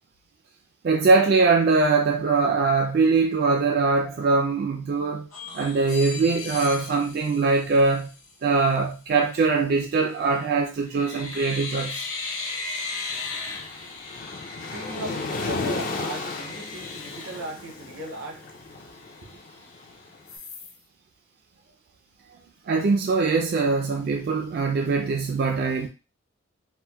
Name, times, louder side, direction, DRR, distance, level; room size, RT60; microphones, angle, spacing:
voice 1, 0.8-5.3 5.5-8.1 8.4-12.0 22.7-25.9, right 4 dB, 50° right, 0.3 m, -22 dB
sound 1, 5.3-8.3 10.1-10.5 10.9-18.1 18.6-18.7 19.0-19.8 20.3-20.8, left 3 dB, 85° left, 0.8 m, -37 dB
Waves surf, 13.1-20.2, left 3 dB, 45° left, 0.4 m, -34 dB
voice 2, 13.6-19.4, right 2 dB, 85° right, 0.7 m, -39 dB
4.2 x 2.1 x 2.2 m
head